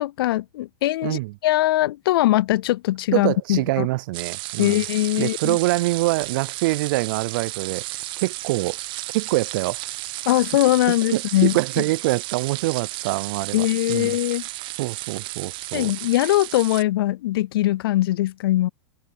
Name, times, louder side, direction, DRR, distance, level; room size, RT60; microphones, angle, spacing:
voice 1, 0.0-3.9 4.6-5.6 10.3-11.6 13.5-14.5 15.7-18.7, left 15 dB, 65° left, 0.4 m, -21 dB
voice 2, 1.0-1.3 3.1-4.8 5.2-8.8 9.1-9.8 11.1-14.2 14.8-15.9, right 20 dB, 55° right, 0.4 m, -25 dB
sound 1, 4.1-16.8, right 19 dB, 40° right, 1.0 m, -33 dB
hypercardioid pair, 120°, 13 cm